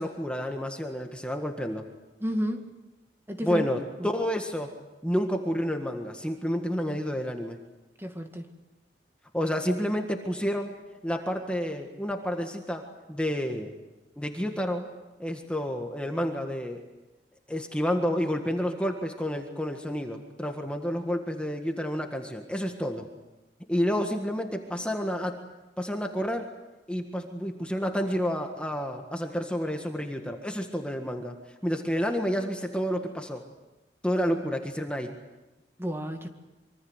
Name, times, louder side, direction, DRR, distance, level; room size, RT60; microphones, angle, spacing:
voice 1, 0.0-1.9 3.4-4.7 5.0-7.6 9.3-10.8 11.0-13.7 14.2-14.8 15.2-16.8 17.5-23.1 23.7-25.4 25.8-26.5 26.9-33.4 34.0-35.1, equal, 5° left, 3 dB, 1.7 m, -30 dB
voice 2, 2.2-2.7 3.3-3.6 4.0-4.1 8.0-8.5 35.8-36.3, equal, 15° right, 5 dB, 1.9 m, -31 dB
25.5 x 24.5 x 8.1 m, 1.1 s
head